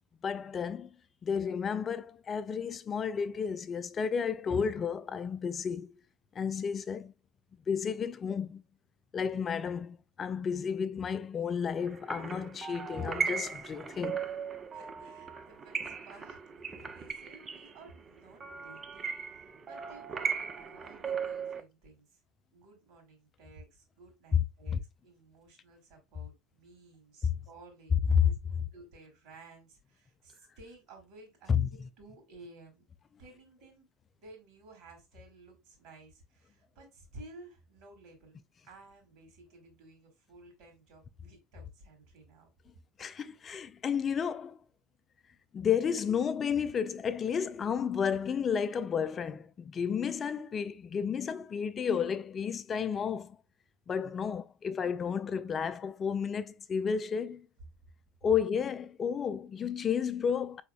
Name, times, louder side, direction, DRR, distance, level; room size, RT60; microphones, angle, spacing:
voice 1, 0.2-0.9 1.2-5.9 6.4-7.1 7.7-8.6 9.1-14.2 24.3-24.4 24.7-24.8 28.1-28.2 31.5-31.7 43.0-44.6 45.5-53.4 53.9-57.5 58.2-60.6, left 7 dB, 30° left, 0.4 m, -32 dB
sound 1, 11.9-21.6, right 6 dB, 30° right, 0.6 m, -38 dB
voice 2, 14.7-16.4 16.6-22.1 22.5-32.8 33.2-33.9 34.2-38.4 38.6-42.5, right 2 dB, 55° right, 2.4 m, -55 dB
4.8 x 3.5 x 2.3 m
figure-of-eight pair, 70°, 0 cm